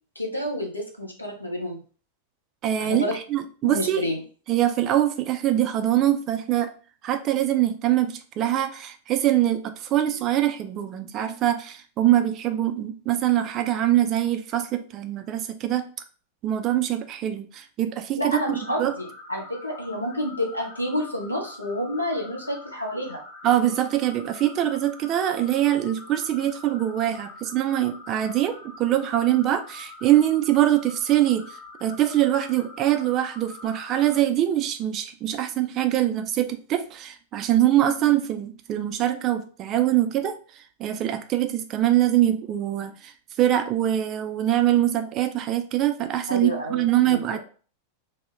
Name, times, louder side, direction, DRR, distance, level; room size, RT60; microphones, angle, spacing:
voice 1, 0.2-1.8 2.8-3.2 3.6-4.2 18.2-23.2 46.3-47.4, equal, 85° left, 0 dB, 0.7 m, -29 dB
voice 2, 2.6-4.0 4.5-6.7 7.0-15.8 16.4-18.9 23.4-31.5 31.8-40.4 40.8-43.1 43.4-47.4, right 12 dB, 35° right, 7 dB, 0.3 m, -23 dB
sound 1, 18.3-34.2, left 3 dB, 35° left, 0.8 m, -45 dB
2.1 x 2.0 x 3.3 m, 0.39 s
figure-of-eight pair, 90°, 0 cm